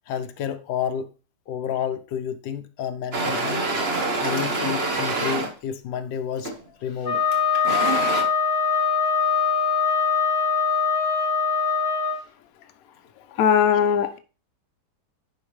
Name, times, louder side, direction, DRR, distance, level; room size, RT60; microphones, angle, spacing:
voice 1, 0.1-1.1 1.5-3.6 4.2-6.5 6.8-7.2 11.6-11.7 12.1-12.2 13.2-13.4, left 8 dB, 80° left, 1.4 m, -30 dB
sound 1, 3.1-5.5 6.4-6.7 7.3-8.2, right 2 dB, 40° right, 1.4 m, -26 dB
Wind instrument woodwind instrument, 7.0-12.2, left 6 dB, 35° left, 1.2 m, -22 dB
voice 2, 13.4-14.2, left 8 dB, 60° left, 1.0 m, -19 dB
10.5 x 4.6 x 3.2 m
omnidirectional pair, 1.9 m